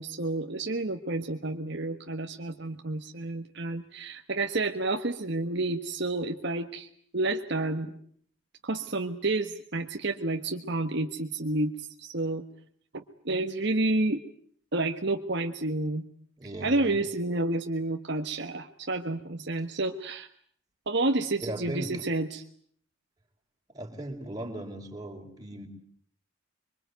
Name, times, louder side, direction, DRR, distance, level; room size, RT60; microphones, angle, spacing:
voice 1, 0.0-6.9 7.1-7.9 8.6-11.7 12.0-12.4 12.9-14.2 14.7-16.0 16.6-20.3 20.9-22.4, right 2 dB, 55° right, 5 dB, 1.4 m, -30 dB
voice 2, 16.4-17.0 21.4-22.0 23.7-25.7, right 1 dB, 20° right, 2 dB, 4.4 m, -37 dB
25.0 x 23.5 x 9.4 m, 0.62 s
head